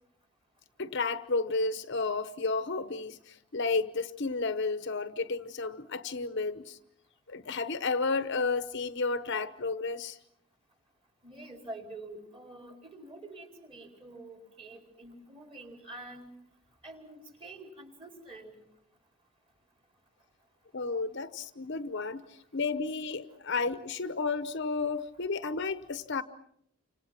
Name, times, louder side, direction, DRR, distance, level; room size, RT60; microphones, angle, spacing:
voice 1, 0.8-3.2 3.5-6.8 7.3-10.2 20.7-22.2 22.5-26.2, left 4 dB, 50° left, 0.9 m, -32 dB
voice 2, 11.2-16.3 16.8-18.5, right 2 dB, 25° right, 4.8 m, -47 dB
29.5 x 26.5 x 5.9 m
head